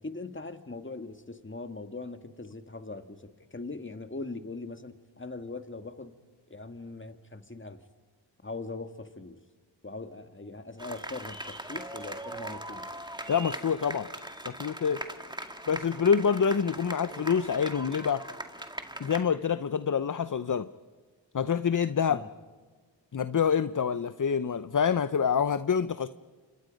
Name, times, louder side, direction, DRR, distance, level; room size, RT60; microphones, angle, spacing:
voice 1, 0.0-6.2 6.5-7.8 8.4-9.4 9.8-12.9 22.1-22.3, left 3 dB, 25° left, 8 dB, 1.8 m, -41 dB
sound 1, 10.8-19.2, right 1 dB, 10° right, 2.1 m, -40 dB
voice 2, 13.3-14.1 14.4-15.0 15.7-18.3 19.0-20.7 21.3-22.3 23.1-26.1, left 7 dB, 40° left, 14 dB, 0.7 m, -26 dB
30.0 x 26.0 x 5.3 m, 1.5 s
cardioid pair, 45°, 46 cm